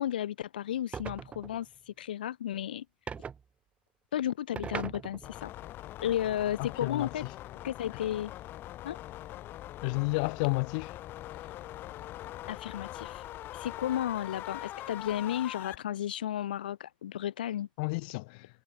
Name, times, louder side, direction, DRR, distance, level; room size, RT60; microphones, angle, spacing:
voice 1, 0.0-2.8 4.1-5.5 6.0-7.2 7.6-8.3 8.8-9.0 12.5-13.2 13.5-17.7, left 11 dB, 75° left, 1.4 m, -33 dB
sound 1, 0.9-1.6 3.1-3.4 4.6-5.4, right 6 dB, 25° right, 1.1 m, -39 dB
sound 2, 5.2-15.8, left 14 dB, 45° left, 4.2 m, -43 dB
voice 2, 6.6-7.1 9.8-10.9 17.8-18.5, left 29 dB, 60° left, 3.4 m, -31 dB
hypercardioid pair, 85°, 5 cm